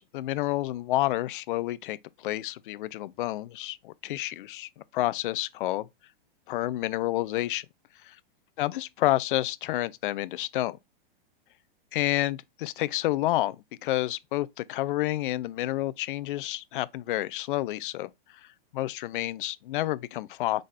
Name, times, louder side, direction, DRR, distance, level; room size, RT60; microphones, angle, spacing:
voice 1, 0.0-5.9 6.5-7.7 8.0-8.2 8.6-10.8 11.9-13.6 13.8-18.1 18.7-20.6, left 16 dB, 60° left, 0.5 m, -29 dB
5.0 x 3.9 x 2.6 m
hypercardioid pair, 145°, 30 cm